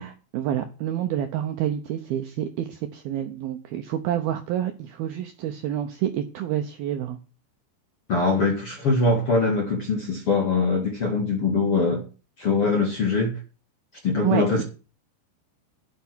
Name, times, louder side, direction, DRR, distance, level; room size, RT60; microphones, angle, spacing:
voice 1, 0.0-7.2 14.2-14.6, right 11 dB, 75° right, 2.2 m, -28 dB
voice 2, 8.1-12.0 12.4-13.4 14.0-14.6, left 3 dB, 45° left, 1.9 m, -22 dB
11.5 x 9.6 x 6.2 m
omnidirectional pair, 5.4 m